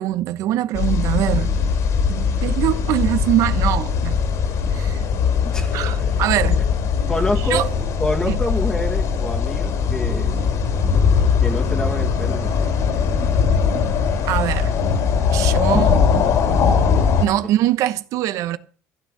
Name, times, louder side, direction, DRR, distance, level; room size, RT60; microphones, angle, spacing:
voice 1, 0.0-1.5 2.1-4.2 4.7-5.0 5.7-6.6 7.5-7.6 8.3-8.4 14.2-14.7 15.3-15.9 17.2-18.6, right 13 dB, 70° right, 1.0 m, -22 dB
sound 1, 0.7-17.3, left 6 dB, 65° left, 3.8 m, -20 dB
voice 2, 5.4-6.2 7.1-7.7 8.0-10.3 11.4-12.8 15.6-15.9 16.2-16.6 16.9-17.1, left 1 dB, 10° left, 2.0 m, -27 dB
15.5 x 6.5 x 8.4 m
cardioid pair, 125°, 6 cm